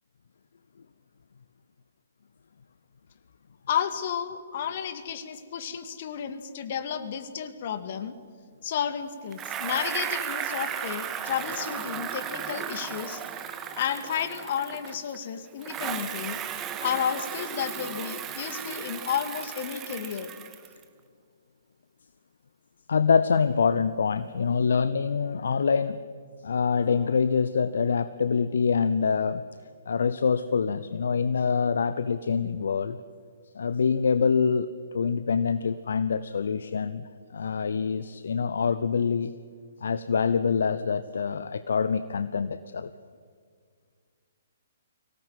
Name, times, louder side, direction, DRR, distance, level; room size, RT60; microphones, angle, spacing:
voice 1, 3.7-8.2 8.6-13.2 13.7-16.4 16.8-20.3, left 8 dB, 45° left, 11 dB, 2.1 m, -32 dB
Bicycle, 9.3-15.2 15.6-20.8, right 8 dB, 20° right, 1.7 m, -35 dB
voice 2, 22.9-26.0 26.4-29.5 29.9-33.0 33.5-37.0 37.3-39.4 39.8-42.9, left 6 dB, 60° left, 13 dB, 0.8 m, -25 dB
24.0 x 18.0 x 9.4 m, 2.1 s
figure-of-eight pair, 125°, 0 cm